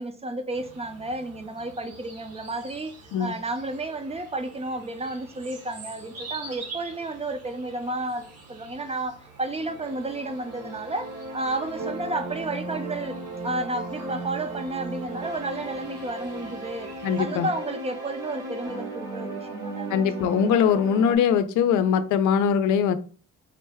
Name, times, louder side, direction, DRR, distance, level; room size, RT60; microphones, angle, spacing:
voice 1, 0.0-2.9 3.2-16.9 17.2-20.0, right 2 dB, 20° right, 0.5 m, -32 dB
sound 1, 0.5-17.2, right 3 dB, 55° right, 1.1 m, -46 dB
sound 2, 9.5-21.2, right 2 dB, 70° right, 1.7 m, -36 dB
voice 2, 17.0-17.5 19.9-22.9, left 8 dB, 85° left, 0.5 m, -22 dB
3.7 x 2.2 x 3.4 m
cardioid pair, 90°, 30 cm